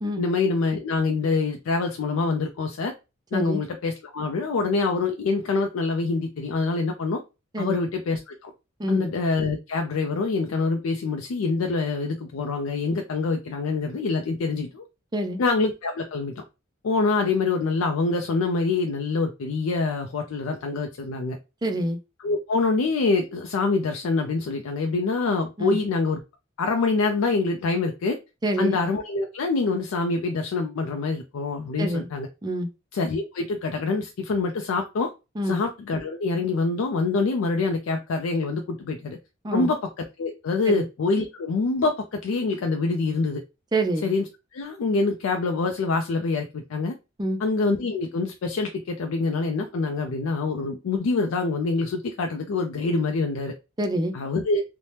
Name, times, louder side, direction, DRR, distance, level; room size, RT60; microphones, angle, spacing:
voice 1, 0.2-2.9 3.3-7.2 7.6-8.5 8.9-14.9 15.4-16.4 16.8-21.4 22.2-26.2 26.6-28.2 28.6-32.3 32.9-35.1 35.4-39.2 39.5-43.4 44.0-46.9 47.4-53.5 54.1-54.6, left 3 dB, 80° left, 4 dB, 0.4 m, -25 dB
voice 2, 21.6-22.0 25.6-25.8 28.4-28.8 31.8-32.1 32.4-32.7 35.4-35.6 39.4-39.7 40.7-40.8 43.7-44.1 47.2-47.4 53.8-54.1, right 1 dB, 20° right, 6 dB, 0.4 m, -26 dB
2.8 x 2.1 x 3.1 m, 0.27 s
head